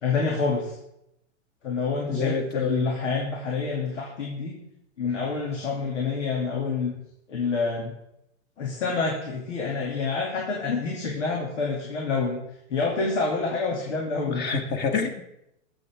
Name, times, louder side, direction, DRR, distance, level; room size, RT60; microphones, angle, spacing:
voice 1, 0.0-0.8 1.6-4.6 5.0-7.0 7.3-7.9 8.6-12.4 12.7-14.5, left 4 dB, 85° left, -1 dB, 2.4 m, -27 dB
voice 2, 2.1-2.8 14.3-15.2, left 5 dB, 30° left, 6 dB, 1.6 m, -27 dB
21.5 x 7.2 x 3.5 m, 0.83 s
hypercardioid pair, 135°, 36 cm